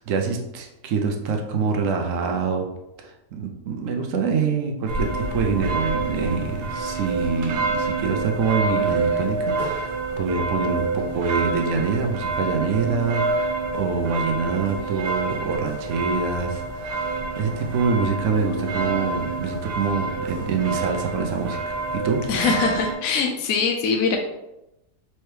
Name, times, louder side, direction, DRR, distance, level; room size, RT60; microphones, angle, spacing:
voice 1, 0.0-2.6 3.0-21.8 22.0-22.2, right 5 dB, 65° right, 3 dB, 0.8 m, -25 dB
sound 1, 4.9-22.9, right 3 dB, 90° right, 1.5 m, -27 dB
voice 2, 22.3-24.2, left 5 dB, 70° left, 3 dB, 0.9 m, -22 dB
4.4 x 3.0 x 3.2 m, 0.90 s
omnidirectional pair, 1.8 m